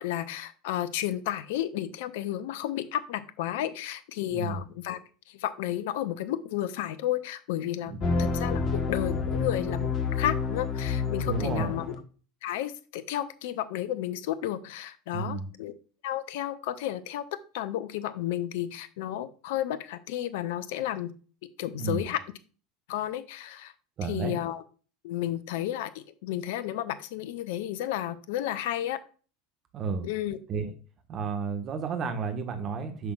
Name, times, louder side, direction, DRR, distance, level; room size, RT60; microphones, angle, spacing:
voice 1, 0.0-5.0 5.3-7.9 8.2-11.8 12.4-15.7 16.0-17.2 17.5-21.1 21.6-22.2 22.9-23.7 24.0-24.6 25.0-29.0 30.0-30.4, left 12 dB, 65° left, 14 dB, 0.6 m, -32 dB
voice 2, 4.3-4.6 7.9-8.0 11.3-11.8 15.1-15.5 21.7-22.1 24.0-24.4 29.7-30.1 30.5-30.7 31.1-33.1, right 5 dB, 40° right, 6 dB, 1.3 m, -32 dB
sound 1, 8.0-11.9, left 4 dB, 40° left, 1.2 m, -29 dB
8.1 x 6.0 x 2.4 m, 0.38 s
figure-of-eight pair, 75°, 0 cm